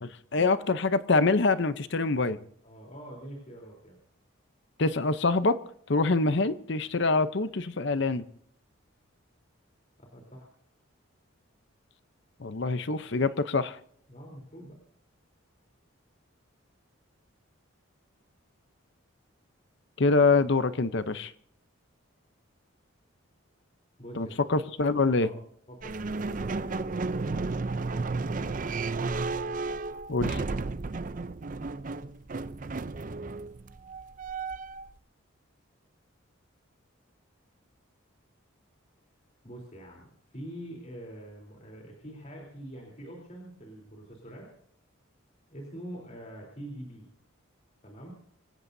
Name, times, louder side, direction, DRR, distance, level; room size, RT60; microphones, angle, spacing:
voice 1, 0.0-2.4 4.8-5.6 5.9-8.2 12.4-13.8 20.0-21.3 24.2-25.3 30.1-30.4, left 3 dB, 55° left, 12 dB, 0.7 m, -25 dB
voice 2, 2.6-4.0 10.0-10.5 14.1-14.8 24.0-24.5 25.2-25.4 25.7-27.0 39.4-44.5 45.5-47.1 47.8-48.1, right 1 dB, 35° left, -1 dB, 3.6 m, -44 dB
sound 1, 25.8-34.9, right 3 dB, 40° right, 0.5 m, -33 dB
25.0 x 16.5 x 2.7 m, 0.64 s
head